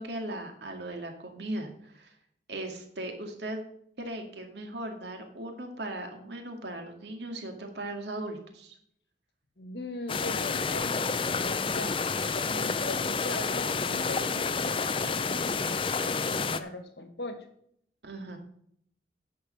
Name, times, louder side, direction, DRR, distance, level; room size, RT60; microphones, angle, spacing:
voice 1, 0.0-2.1 2.5-3.6 4.0-8.8 18.0-18.4, right 1 dB, 70° right, 4 dB, 2.2 m, -38 dB
voice 2, 9.6-17.5, left 2 dB, 65° left, 8 dB, 1.8 m, -40 dB
sound 1, 10.1-16.6, left 4 dB, 30° left, 0.5 m, -29 dB
10.0 x 6.7 x 6.6 m, 0.68 s
head